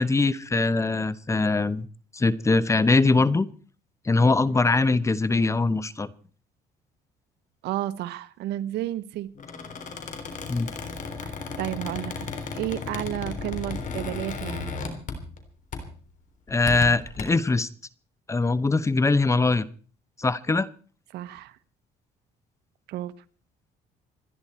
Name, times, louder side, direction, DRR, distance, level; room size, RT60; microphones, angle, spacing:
voice 1, 0.0-1.9 2.1-3.5 4.1-6.1 10.5-10.7 16.5-17.7 18.3-19.6 20.2-20.7, left 3 dB, 15° left, 17 dB, 0.9 m, -22 dB
voice 2, 7.6-9.3 11.2-14.7 21.1-21.6 22.9-23.1, right 14 dB, 80° right, 14 dB, 1.1 m, -32 dB
Squeak, 9.3-15.4 15.7-16.0 16.5-17.2, left 4 dB, 50° left, 3.6 m, -35 dB
27.0 x 10.5 x 4.4 m, 0.40 s
cardioid pair, 110°, 17 cm